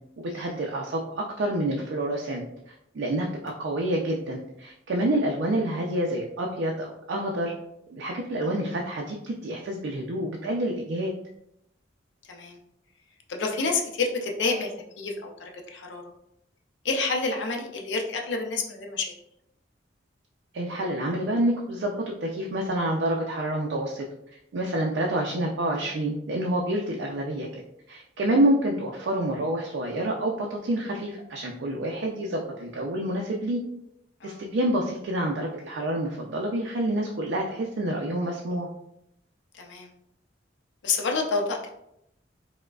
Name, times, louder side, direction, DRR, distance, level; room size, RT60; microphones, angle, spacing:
voice 1, 0.2-7.5 7.9-11.1 20.5-24.1 24.5-27.5 27.9-33.6 34.2-38.7, right 1 dB, 70° right, -1 dB, 0.4 m, -28 dB
voice 2, 13.3-15.3 15.7-16.0 16.8-19.1 34.2-34.4 39.5-39.9 40.8-41.7, left 4 dB, 75° left, 2 dB, 0.5 m, -28 dB
4.5 x 2.1 x 2.3 m, 0.81 s
head